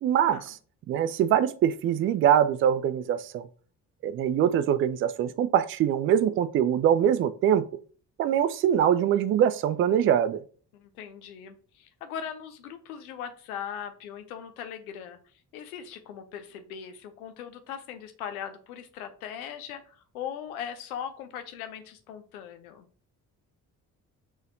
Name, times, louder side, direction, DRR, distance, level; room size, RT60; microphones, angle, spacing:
voice 1, 0.0-0.6 0.9-3.5 4.0-7.7 8.2-10.4, right 9 dB, 30° right, 13 dB, 0.4 m, -23 dB
voice 2, 10.7-15.2 15.5-22.9, left 8 dB, 70° left, 9 dB, 0.7 m, -39 dB
4.9 x 4.0 x 2.6 m, 0.43 s
figure-of-eight pair, 40°, 45 cm